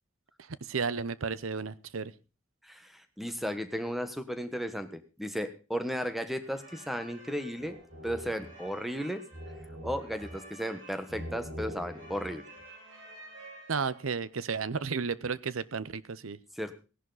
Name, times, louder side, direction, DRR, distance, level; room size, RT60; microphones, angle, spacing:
voice 1, 0.4-2.1 13.7-16.4, right 5 dB, 90° right, 18 dB, 0.8 m, -33 dB
voice 2, 2.6-7.8 8.0-9.2 9.8-12.5 16.5-16.7, equal, ahead, 9 dB, 1.2 m, -35 dB
sound 1, 6.4-14.2, equal, 65° right, 6.2 m, -45 dB
17.0 x 11.0 x 4.0 m, 0.33 s
head